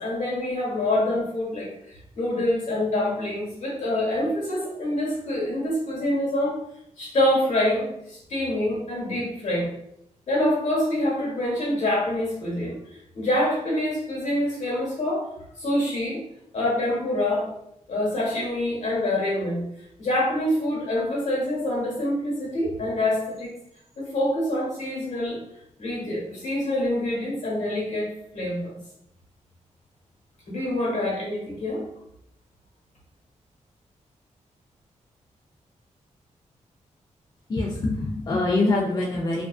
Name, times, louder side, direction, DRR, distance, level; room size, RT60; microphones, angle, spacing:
voice 1, 0.0-6.5 7.0-9.7 10.3-12.8 13.1-15.3 15.6-16.2 16.5-17.5 17.9-19.6 20.0-23.5 24.0-25.4 25.8-28.8 30.5-31.8, left 1 dB, 70° left, -4 dB, 1.2 m, -26 dB
voice 2, 37.5-39.5, left 2 dB, 35° left, -2 dB, 0.4 m, -24 dB
2.4 x 2.3 x 2.3 m, 0.77 s
wide cardioid pair, 105°, 13 cm